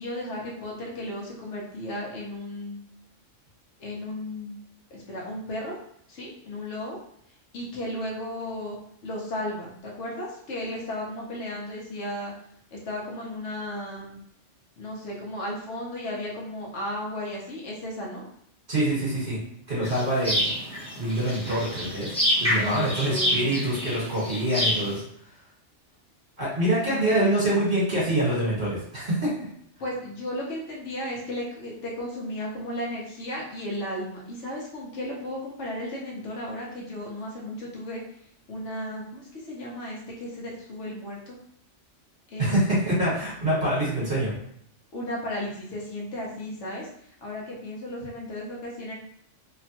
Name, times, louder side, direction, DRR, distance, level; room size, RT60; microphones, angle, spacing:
voice 1, 0.0-2.8 3.8-4.6 4.9-5.8 6.1-7.0 7.5-12.3 12.7-14.2 14.8-18.2 22.6-23.7 26.8-27.1 29.8-38.0 38.5-41.4 42.3-43.1 44.9-46.9 47.2-48.9, left 1 dB, 70° left, -3 dB, 1.0 m, -34 dB
voice 2, 18.7-19.4 19.7-20.5 21.0-22.1 22.4-25.0 26.4-29.3 42.4-44.3, right 1 dB, 35° right, -7 dB, 1.3 m, -25 dB
sound 1, 19.8-25.0, equal, 5° left, 0.7 m, -27 dB
2.9 x 2.1 x 2.8 m, 0.69 s
omnidirectional pair, 1.3 m